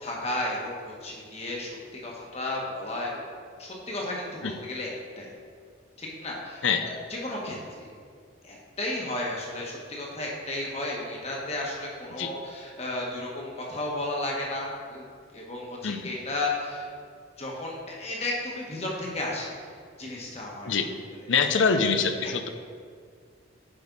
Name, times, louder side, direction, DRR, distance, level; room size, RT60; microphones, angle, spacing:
voice 1, 0.0-3.2 3.6-5.3 6.0-7.9 8.4-15.0 15.3-16.9 17.4-20.7, left 2 dB, 30° left, -3 dB, 1.4 m, -33 dB
voice 2, 21.3-22.5, left 5 dB, 70° left, 8 dB, 0.6 m, -24 dB
9.4 x 5.2 x 4.0 m, 2.1 s
head